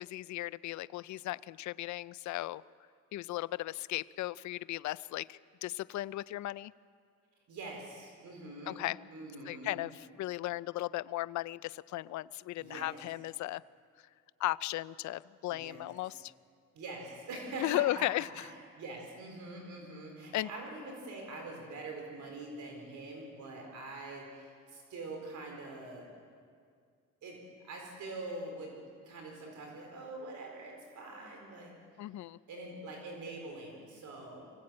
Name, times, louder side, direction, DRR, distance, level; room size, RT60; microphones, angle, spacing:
voice 1, 0.0-2.6 3.1-6.7 8.7-9.0 9.5-13.6 14.4-16.3 17.6-18.3 20.3-20.5 32.0-32.4, left 16 dB, 70° left, 18 dB, 0.5 m, -36 dB
voice 2, 7.5-8.8 9.1-9.8 12.6-13.0 15.5-15.8 16.7-18.1 18.3-26.1 27.2-28.7 29.0-31.7 32.5-34.5, right 2 dB, 70° right, 1 dB, 4.4 m, -44 dB
24.0 x 16.5 x 8.7 m, 2.2 s
cardioid pair, 90°, 30 cm